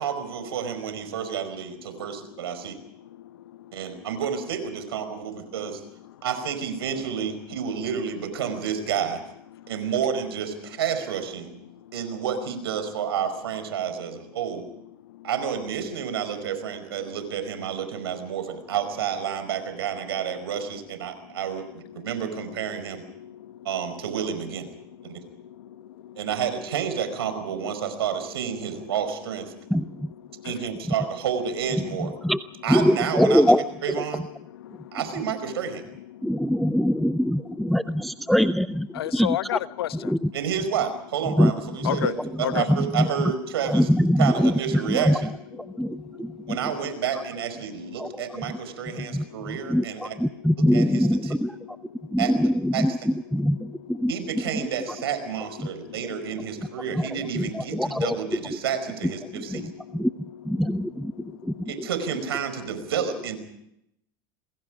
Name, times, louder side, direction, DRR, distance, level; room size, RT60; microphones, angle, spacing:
voice 1, 0.0-2.8 3.7-5.8 6.2-9.2 9.7-11.5 11.9-14.6 15.2-23.0 23.7-24.7 25.0-25.2 26.2-29.5 30.4-32.1 32.6-33.4 33.8-34.2 34.9-35.8 40.3-43.9 44.2-45.3 46.5-50.1 50.7-51.4 52.2-52.3 52.7-52.9 54.1-59.7 61.7-63.4, right 8 dB, 90° right, 5.0 m, -30 dB
voice 2, 23.2-23.6 25.6-26.2 30.4-30.5 34.6-35.0 36.1-36.5 38.9-40.1 41.8-42.1 42.4-42.7 45.6-46.5 48.8-49.5 50.3-50.5 51.5-52.2 54.0-54.1 56.6-56.7 60.6-60.7 61.2-61.7, left 13 dB, 85° left, 1.1 m, -34 dB
voice 3, 29.7-30.1 32.2-32.4 32.7-33.6 36.2-38.9 39.1-39.6 39.9-40.3 41.4-41.5 41.8-42.1 42.6-43.3 43.7-45.2 45.8-46.6 48.0-48.1 48.4-48.6 49.0-51.6 52.1-54.1 55.6-55.7 57.0-57.1 57.3-58.2 59.3-59.6 59.9-60.1 60.4-61.5, equal, ahead, 0.8 m, -23 dB
28.0 x 21.5 x 5.0 m
hypercardioid pair, 95°, 13 cm